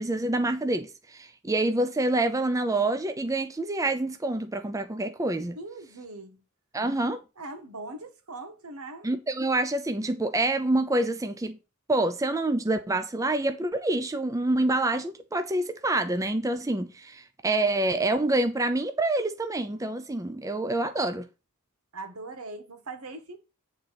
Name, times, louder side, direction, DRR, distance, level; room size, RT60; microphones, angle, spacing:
voice 1, 0.0-5.6 6.7-7.2 9.0-11.6 11.9-21.3, right 2 dB, 15° right, 0.5 m, -27 dB
voice 2, 5.5-6.4 7.4-9.1 21.9-23.4, right 2 dB, 80° right, 1.5 m, -40 dB
8.7 x 3.8 x 5.8 m
head